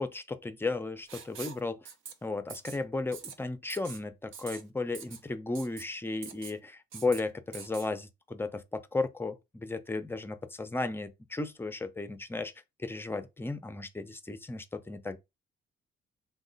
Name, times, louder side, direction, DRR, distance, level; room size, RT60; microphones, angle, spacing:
voice 1, 0.0-1.9 2.2-12.5 12.8-15.2, left 3 dB, 10° left, 0.5 m, -34 dB
Writing, 1.1-1.6 1.9-2.1 2.5-2.8 3.1-3.3 3.7-4.0 4.3-4.6 4.9-5.2 5.6-5.8 6.2-6.6 6.9-7.2 7.5-7.9, right 7 dB, 80° right, 0.6 m, -44 dB
3.0 x 2.2 x 3.8 m
cardioid pair, 90°, 20 cm